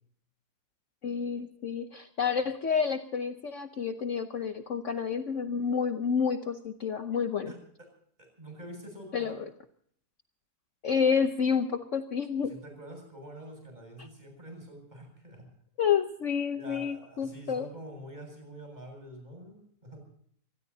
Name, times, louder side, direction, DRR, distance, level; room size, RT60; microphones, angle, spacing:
voice 1, 1.0-7.5 9.1-9.4 10.8-12.5 15.8-17.7, left 6 dB, 55° left, 7 dB, 1.2 m, -29 dB
voice 2, 7.5-7.9 8.2-9.4 12.4-15.5 16.5-20.0, right 1 dB, 25° right, 3 dB, 7.6 m, -46 dB
26.0 x 19.5 x 2.8 m, 0.63 s
omnidirectional pair, 1.7 m